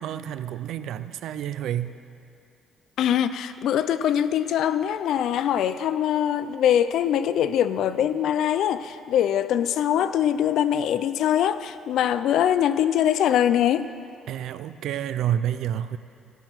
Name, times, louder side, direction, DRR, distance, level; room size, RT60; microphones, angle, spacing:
voice 1, 0.0-1.9 14.3-16.0, right 10 dB, 60° right, 13 dB, 0.4 m, -29 dB
voice 2, 3.0-13.9, left 10 dB, 60° left, 13 dB, 0.4 m, -23 dB
13.0 x 10.0 x 6.0 m, 2.6 s
cardioid pair, 175°, 0 cm